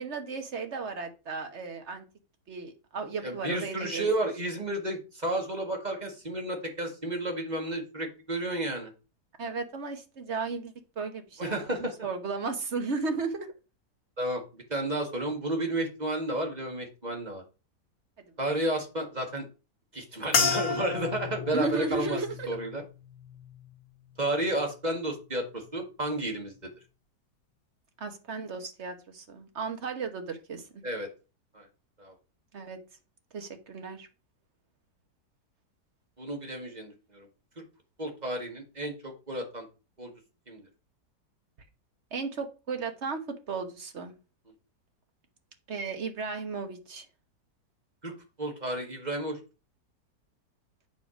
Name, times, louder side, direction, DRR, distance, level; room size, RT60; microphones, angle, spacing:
voice 1, 0.0-2.0 2.5-4.1 9.4-13.5 21.5-22.6 28.0-30.8 32.5-32.8 33.3-34.1 42.1-43.2 43.5-44.1 45.7-47.0, right 4 dB, 45° right, 1.4 m, -35 dB
voice 2, 3.2-8.9 11.4-11.9 14.2-17.4 18.4-19.5 19.9-22.2 22.5-22.8 24.2-26.7 30.8-31.1 31.5-31.7 32.0-32.1 36.2-37.3 38.0-39.7 40.0-40.1 40.5-40.6 48.0-48.1 48.4-49.4, right 1 dB, 25° right, 1.8 m, -32 dB
sound 1, 20.3-24.9 25.2-25.8 26.4-26.7, left 5 dB, 50° left, 1.6 m, -33 dB
8.2 x 5.1 x 5.0 m
omnidirectional pair, 1.9 m